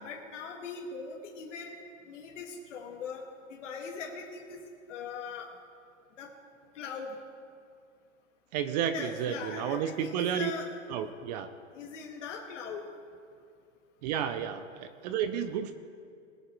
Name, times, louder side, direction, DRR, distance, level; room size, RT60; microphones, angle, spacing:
voice 1, 0.0-1.8 2.1-4.6 4.9-5.5 6.2-6.3 6.7-7.2 8.7-10.7 11.7-12.8, left 5 dB, 65° left, 0 dB, 1.9 m, -40 dB
voice 2, 8.5-10.5 10.9-11.5 14.0-15.7, right 9 dB, 35° right, 10 dB, 0.6 m, -31 dB
21.0 x 8.0 x 4.5 m, 2.4 s
hypercardioid pair, 135°, 39 cm